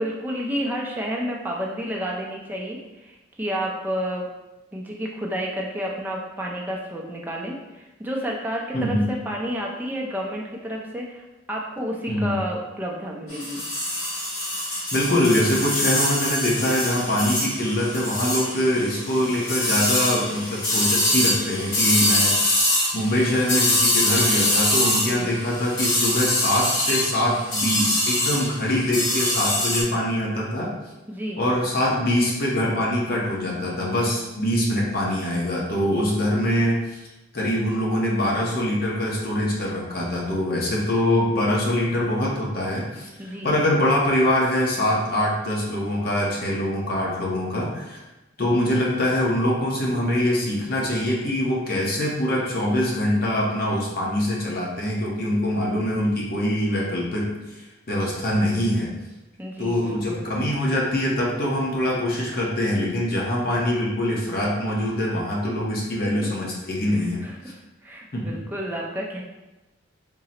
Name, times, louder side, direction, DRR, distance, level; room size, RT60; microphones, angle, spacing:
voice 1, 0.0-4.3 4.7-13.6 25.1-25.3 31.1-31.4 43.2-43.5 59.4-60.3 66.1-66.3 66.8-67.3 67.8-69.2, equal, 10° right, -2 dB, 0.4 m, -30 dB
voice 2, 8.7-9.1 12.1-12.4 14.9-22.6 22.9-30.7 31.4-37.0 37.3-48.0 48.4-57.6 57.9-58.9 59.6-67.2 68.1-68.3, left 1 dB, 50° left, -4 dB, 0.8 m, -23 dB
sound 1, 13.3-29.8, left 1 dB, 75° left, 1.2 m, -24 dB
3.7 x 2.0 x 4.2 m, 1.0 s
head